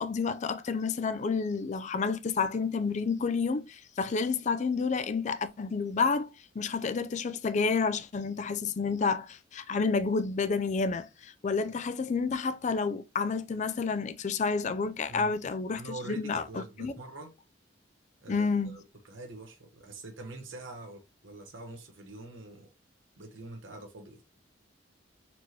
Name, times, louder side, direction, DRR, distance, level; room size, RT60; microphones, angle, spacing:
voice 1, 0.0-15.8 16.1-16.9 18.3-18.8, left 4 dB, 40° left, 0.4 m, -30 dB
voice 2, 15.7-17.3 18.2-22.7 23.2-24.2, right 2 dB, 85° right, 1.0 m, -45 dB
4.3 x 2.9 x 3.2 m
head